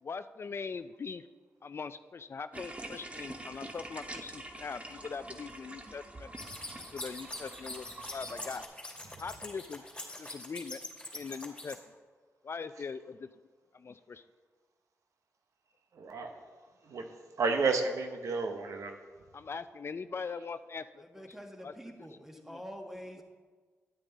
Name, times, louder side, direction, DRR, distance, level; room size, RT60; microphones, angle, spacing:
voice 1, 0.0-1.3 1.6-6.3 6.8-8.6 9.2-9.8 10.2-10.8 11.1-11.8 12.4-13.3 13.7-14.2 19.3-22.1 22.4-22.6, left 5 dB, 50° left, 13 dB, 0.4 m, -41 dB
sound 1, 2.5-8.6, right 1 dB, 25° right, 1.0 m, -46 dB
sound 2, 6.4-11.7, left 1 dB, 15° left, 2.7 m, -43 dB
voice 2, 15.9-16.3 16.8-17.1 17.4-19.0, right 4 dB, 80° right, 5 dB, 0.9 m, -31 dB
voice 3, 21.0-23.2, equal, 5° right, 2 dB, 1.5 m, -46 dB
10.0 x 9.0 x 4.0 m, 1.5 s
cardioid pair, 55°, 5 cm